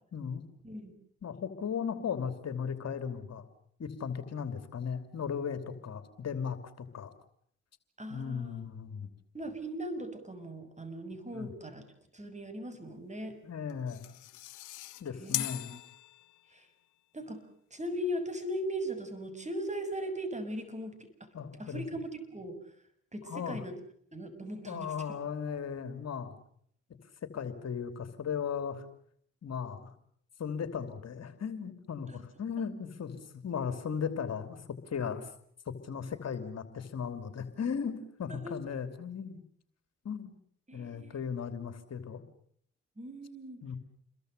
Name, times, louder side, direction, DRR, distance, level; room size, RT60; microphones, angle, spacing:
voice 1, 0.1-0.4 1.2-3.5 3.8-7.1 8.1-9.1 11.3-11.5 13.4-14.1 15.0-15.7 21.3-21.8 23.2-23.6 24.7-26.3 27.2-28.8 29.4-29.9 30.4-35.3 35.7-39.4 40.0-40.3 40.7-42.2 43.6-43.8, left 7 dB, 55° left, 9 dB, 3.0 m, -37 dB
voice 2, 8.0-8.7 9.3-11.9 12.1-13.4 15.2-15.8 16.5-16.7 17.1-17.5 17.7-21.1 21.6-22.6 23.1-23.8 24.1-24.9 32.1-32.2 38.3-38.5 40.7-41.2 43.0-43.7, equal, 25° right, 10 dB, 7.0 m, -39 dB
sound 1, 13.7-16.7, left 16 dB, 80° left, 1.1 m, -39 dB
29.0 x 22.5 x 6.8 m, 0.64 s
supercardioid pair, 50°, 30 cm